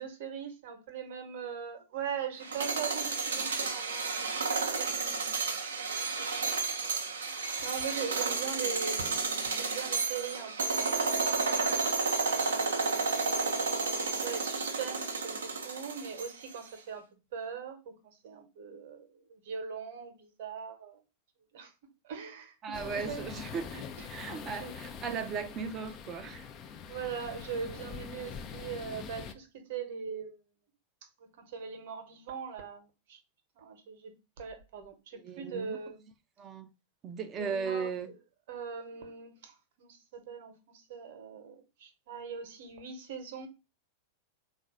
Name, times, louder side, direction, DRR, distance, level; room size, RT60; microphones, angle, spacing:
voice 1, 0.0-5.6 5.8-6.3 6.7-6.8 7.2-11.3 12.4-17.1 17.3-21.0 21.5-21.7 22.0-23.3 23.7-24.1 24.6-24.8 26.9-30.4 31.2-33.2 33.6-36.0 37.4-37.9 38.5-43.5, right 6 dB, 55° right, 1.0 m, -41 dB
sound 1, 2.4-16.5, right 4 dB, 70° right, 0.7 m, -32 dB
voice 2, 22.6-26.5 35.2-35.8 36.4-36.7 37.0-38.1, right 6 dB, 30° right, 0.6 m, -37 dB
sound 2, 22.7-29.3, left 6 dB, 30° left, 0.5 m, -44 dB
3.9 x 2.5 x 4.6 m
figure-of-eight pair, 90°, 0 cm